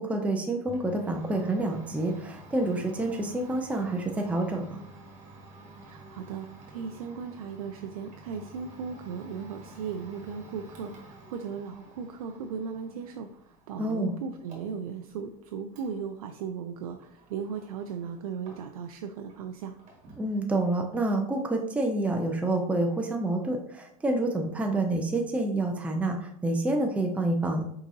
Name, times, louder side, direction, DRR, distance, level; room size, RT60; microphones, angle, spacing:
voice 1, 0.0-4.8 13.8-14.1 20.2-27.6, right 2 dB, 5° right, 2 dB, 0.6 m, -28 dB
Domestic sounds home sounds, 0.6-19.0 19.3-20.3, right 2 dB, 40° right, 1.6 m, -50 dB
voice 2, 5.8-19.8, right 6 dB, 85° right, 5 dB, 0.4 m, -37 dB
4.8 x 3.7 x 2.7 m, 0.74 s
supercardioid pair, 110°, 18 cm